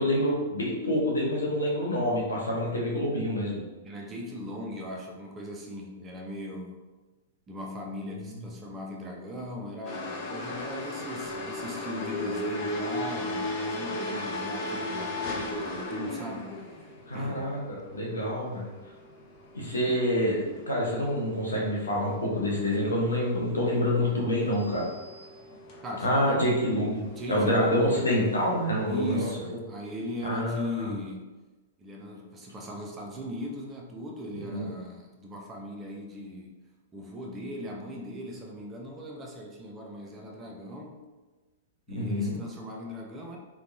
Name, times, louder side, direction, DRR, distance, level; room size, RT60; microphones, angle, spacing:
voice 1, 0.0-3.6 17.1-18.7 19.5-24.9 26.0-29.3 30.2-30.9 34.3-34.6 41.9-42.3, equal, 75° left, -3 dB, 0.7 m, -27 dB
voice 2, 3.8-6.8 7.5-17.6 25.8-26.5 27.2-28.0 28.9-31.3 31.8-36.6 36.9-41.0 41.9-43.4, left 1 dB, 20° right, 0 dB, 0.4 m, -38 dB
sound 1, 9.8-29.3, left 1 dB, 40° left, 0.5 m, -38 dB
2.9 x 2.1 x 2.6 m, 1.2 s
figure-of-eight pair, 105°, 0 cm